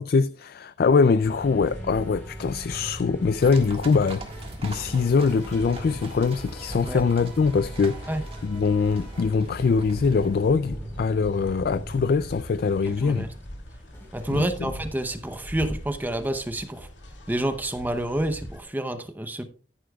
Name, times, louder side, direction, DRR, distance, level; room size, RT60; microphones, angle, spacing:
voice 1, 0.0-4.4 4.6-8.2 8.4-13.3 14.3-14.7, left 5 dB, 50° left, 0.3 m, -23 dB
sound 1, 1.2-15.3, right 1 dB, 15° left, 3.1 m, -40 dB
sound 2, 1.6-18.6, equal, 75° left, 2.6 m, -43 dB
sound 3, 3.4-10.3, right 3 dB, 30° right, 1.7 m, -43 dB
voice 2, 12.9-13.3 14.1-16.9 17.3-19.4, right 1 dB, 10° right, 0.7 m, -28 dB
14.0 x 10.0 x 2.3 m
head